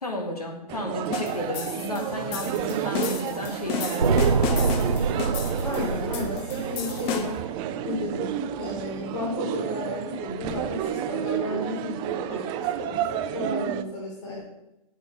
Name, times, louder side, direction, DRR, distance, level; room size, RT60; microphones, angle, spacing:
voice 1, 0.0-4.9, left 1 dB, 75° left, 2 dB, 2.5 m, -33 dB
sound 1, 0.7-13.8, right 10 dB, 25° right, 0.6 m, -31 dB
sound 2, 1.1-7.5, left 8 dB, 30° left, 1.2 m, -34 dB
sound 3, 4.0-8.1, right 4 dB, 90° right, 0.4 m, -26 dB
voice 2, 5.6-7.3 7.8-14.4, left 2 dB, 55° left, -6 dB, 4.5 m, -33 dB
8.9 x 8.2 x 7.7 m, 0.91 s
figure-of-eight pair, 115°, 20 cm